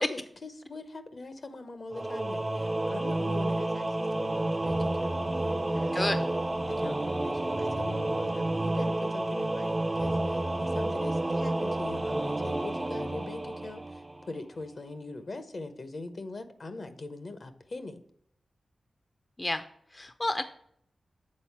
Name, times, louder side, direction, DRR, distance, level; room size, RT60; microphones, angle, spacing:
voice 1, 0.0-6.3 6.7-18.0, left 2 dB, 60° left, 10 dB, 0.8 m, -42 dB
Singing / Musical instrument, 1.9-14.4, right 1 dB, 30° right, 0.5 m, -30 dB
voice 2, 19.9-20.4, left 1 dB, 30° left, 10 dB, 0.5 m, -30 dB
7.5 x 4.0 x 4.6 m, 0.69 s
cardioid pair, 40°, 0 cm